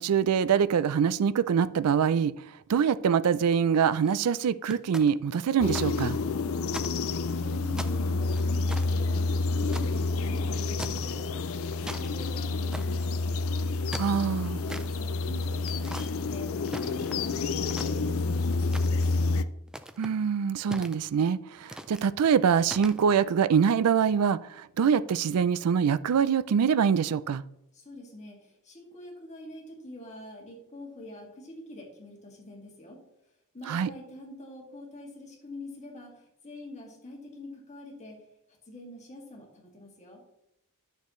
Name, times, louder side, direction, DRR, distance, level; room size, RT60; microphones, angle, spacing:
voice 1, 0.0-2.3 2.7-6.2 14.0-14.6 20.0-27.4 33.7-33.9, right 7 dB, 85° right, 0.4 m, -24 dB
sound 1, 3.8-4.2 4.7-5.9 6.2-6.3 6.7-7.4 7.8-9.9 10.8-11.2 11.5-12.1 12.7-13.0 13.7-14.9 15.6-16.1 16.7-17.3 17.7-18.3 18.7-19.2 19.7-20.1 20.7-21.3 21.7-22.1 22.7-23.0, right 1 dB, 5° right, 0.3 m, -40 dB
sound 2, 5.6-19.4, left 3 dB, 65° left, 0.4 m, -29 dB
voice 2, 6.6-6.9 7.3-13.4 14.4-19.1 27.7-33.0 33.5-38.2 38.7-40.2, left 1 dB, 30° left, 2.1 m, -45 dB
10.5 x 6.6 x 3.1 m
head